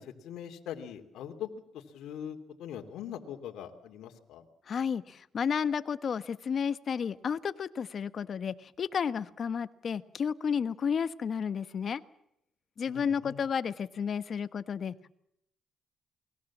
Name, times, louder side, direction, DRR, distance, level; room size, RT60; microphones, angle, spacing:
voice 1, 0.0-1.5 1.7-4.4 12.9-13.4, left 9 dB, 80° left, 4 dB, 3.0 m, -42 dB
voice 2, 4.7-12.0 12.8-15.1, left 7 dB, 50° left, 13 dB, 1.3 m, -32 dB
29.0 x 21.5 x 7.5 m, 0.77 s
cardioid pair, 90°, 0 cm